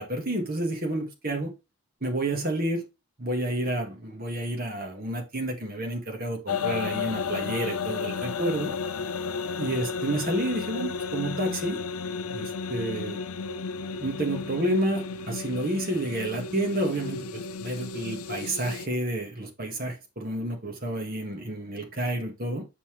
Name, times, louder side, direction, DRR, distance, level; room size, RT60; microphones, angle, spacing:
voice 1, 0.0-1.5 2.0-2.8 3.2-8.7 9.6-11.8 12.3-13.2 14.0-22.6, right 1 dB, 40° right, 1.6 m, -30 dB
sound 1, 6.5-18.9, left 5 dB, 80° left, 0.6 m, -33 dB
6.8 x 5.5 x 3.1 m
head